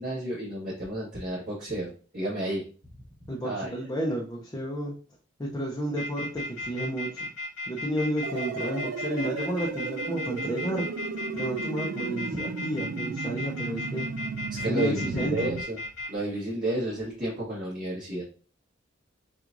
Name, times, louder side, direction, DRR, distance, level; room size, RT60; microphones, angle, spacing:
voice 1, 0.0-2.6 3.4-3.8 14.5-15.8 16.1-18.2, right 1 dB, 45° right, -9 dB, 1.5 m, -31 dB
voice 2, 3.3-5.0 5.4-7.3 7.7-10.9 11.3-14.1 14.7-15.5, right 1 dB, 20° left, -2 dB, 0.6 m, -31 dB
sound 1, 5.9-16.1, left 2 dB, 85° left, 1.8 m, -35 dB
sound 2, 8.2-15.6, right 5 dB, 75° right, 0.3 m, -35 dB
5.9 x 2.4 x 2.5 m, 0.38 s
head